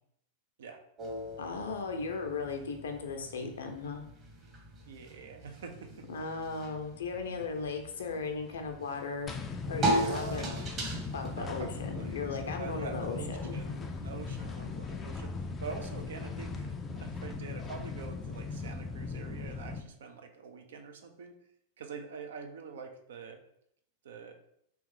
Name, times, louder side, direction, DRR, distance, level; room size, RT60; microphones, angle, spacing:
sound 1, 1.0-14.6, right 1 dB, 30° right, 1.1 m, -39 dB
voice 1, 1.4-4.0 6.1-9.3 9.7-10.5 11.1-13.8, left 4 dB, 65° left, 4 dB, 0.6 m, -37 dB
voice 2, 4.9-6.4 10.0-10.6 11.4-12.2 12.6-21.3 21.8-23.4 24.0-24.3, right 5 dB, 60° right, 4 dB, 0.5 m, -45 dB
sound 2, 9.3-19.8, left 4 dB, 20° left, 0.4 m, -38 dB
3.1 x 3.0 x 3.6 m, 0.72 s
figure-of-eight pair, 90°, 0 cm